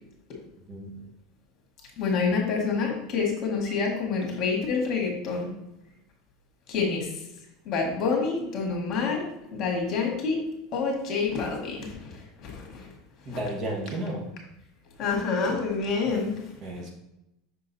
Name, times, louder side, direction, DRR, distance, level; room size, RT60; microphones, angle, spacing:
voice 1, 2.0-5.5 6.7-7.1 7.7-10.4 10.7-12.9 13.3-13.4 15.0-16.4, left 4 dB, 40° left, 0 dB, 1.8 m, -27 dB
voice 2, 13.2-14.2 16.6-16.9, right 1 dB, 40° right, 0 dB, 1.3 m, -32 dB
6.3 x 3.8 x 4.1 m, 0.86 s
supercardioid pair, 140°, 0 cm